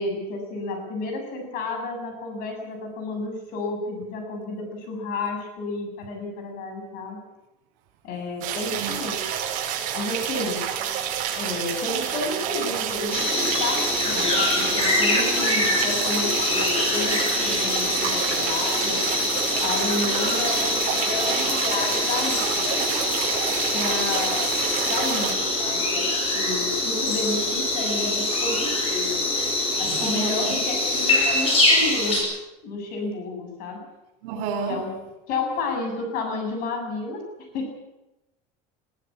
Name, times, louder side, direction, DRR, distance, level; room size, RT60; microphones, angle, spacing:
voice 1, 0.0-7.2 8.0-9.3 9.9-10.6 11.3-19.0 19.6-22.9 23.7-24.6 24.9-29.3 29.8-32.2 32.6-33.9 34.7-35.0 35.3-37.2 37.5-37.7, left 3 dB, 55° left, 4 dB, 7.4 m, -31 dB
sound 1, 8.4-25.3, right 9 dB, 50° right, 5.4 m, -29 dB
sound 2, 13.1-32.2, left 2 dB, 35° left, 7.9 m, -24 dB
voice 2, 29.9-30.6 34.2-34.8, right 5 dB, 90° right, 1 dB, 4.5 m, -30 dB
22.5 x 15.5 x 8.8 m, 0.95 s
cardioid pair, 165°, 17 cm